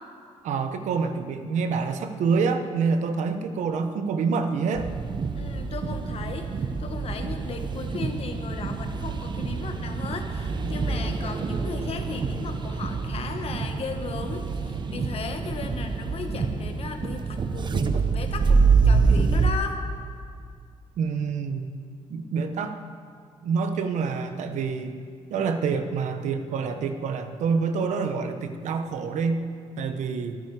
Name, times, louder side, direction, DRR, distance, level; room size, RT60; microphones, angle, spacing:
voice 1, 0.4-4.9 21.0-21.7 22.1-22.8 23.4-25.0 25.3-29.4 29.8-30.4, right 5 dB, 85° right, 8 dB, 1.0 m, -27 dB
sound 1, 4.7-19.5, right 4 dB, 40° right, 0.8 m, -26 dB
voice 2, 5.3-19.8, left 5 dB, 55° left, 5 dB, 1.4 m, -36 dB
24.0 x 9.3 x 4.9 m, 2.3 s
cardioid pair, 120°, 12 cm